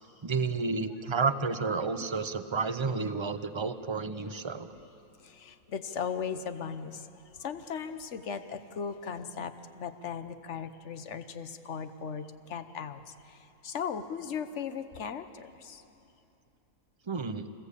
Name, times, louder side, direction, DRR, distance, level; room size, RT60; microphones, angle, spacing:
voice 1, 0.2-4.7 17.1-17.5, right 4 dB, 25° right, 10 dB, 0.6 m, -31 dB
voice 2, 5.2-7.1 7.4-13.0 13.6-15.8, left 6 dB, 55° left, 10 dB, 1.2 m, -37 dB
27.0 x 20.0 x 8.4 m, 2.8 s
omnidirectional pair, 1.5 m